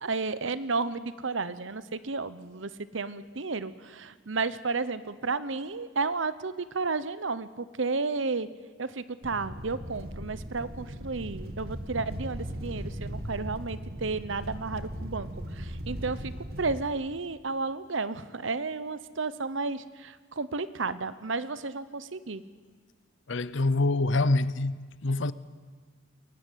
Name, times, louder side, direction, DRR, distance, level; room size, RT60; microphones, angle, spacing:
voice 1, 0.0-8.5 8.8-16.3 16.6-22.4, right 4 dB, 70° right, 1.0 m, -32 dB
sound 1, 9.2-16.8, equal, 50° right, 2.2 m, -38 dB
voice 2, 23.3-25.3, left 2 dB, 65° left, 0.8 m, -26 dB
22.5 x 18.0 x 9.3 m
head